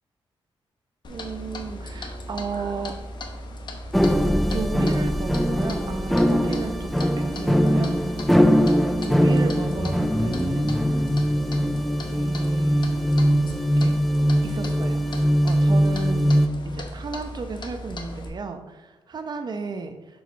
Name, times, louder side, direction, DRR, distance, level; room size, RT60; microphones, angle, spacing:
Clock, 1.0-18.3, left 1 dB, 50° left, 1.0 m, -37 dB
voice 1, 1.1-2.9 4.5-11.2 12.1-13.9 14.4-16.3 16.6-20.2, right 4 dB, 45° right, 7 dB, 0.7 m, -34 dB
sound 1, 3.9-16.5, equal, ahead, 0.4 m, -21 dB
5.9 x 4.7 x 4.0 m, 1.1 s
cardioid pair, 95°, 10 cm